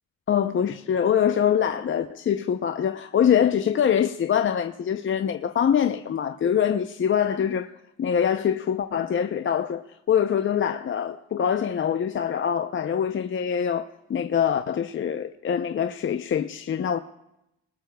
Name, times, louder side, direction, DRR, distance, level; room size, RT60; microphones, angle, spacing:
voice 1, 0.3-7.7 8.0-17.0, left 8 dB, 40° left, 0.6 m, -24 dB
24.5 x 20.0 x 2.3 m
cardioid pair, 90°, 30 cm